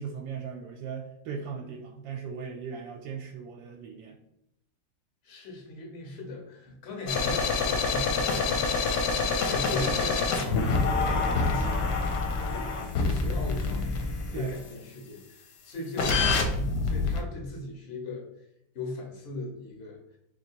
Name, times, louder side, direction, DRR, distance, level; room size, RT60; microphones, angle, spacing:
voice 1, 0.0-4.1 14.3-14.5, right 6 dB, 80° right, 1 dB, 1.3 m, -38 dB
voice 2, 5.2-12.7 13.0-18.2 18.7-20.2, left 2 dB, 45° left, 1 dB, 0.9 m, -38 dB
sound 1, 7.1-14.5 16.0-17.2, left 4 dB, 75° left, 1.2 m, -26 dB
3.0 x 2.9 x 4.3 m, 0.80 s
omnidirectional pair, 2.0 m